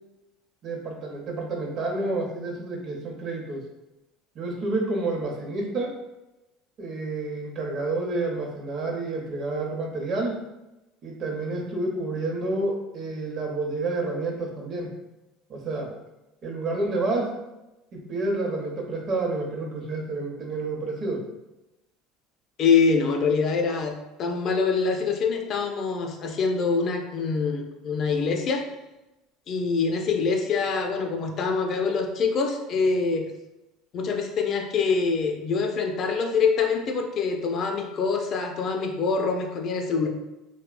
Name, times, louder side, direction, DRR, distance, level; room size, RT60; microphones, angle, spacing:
voice 1, 0.6-3.7 4.4-6.0 6.8-10.4 11.0-14.9 15.5-16.0 16.4-17.4 17.9-21.3, right 2 dB, 45° right, 1 dB, 0.6 m, -29 dB
voice 2, 22.6-23.9 24.2-28.6 29.5-33.3 33.9-40.1, left 5 dB, 45° left, 4 dB, 0.3 m, -25 dB
3.0 x 2.0 x 2.4 m, 0.96 s
supercardioid pair, 115°, 0 cm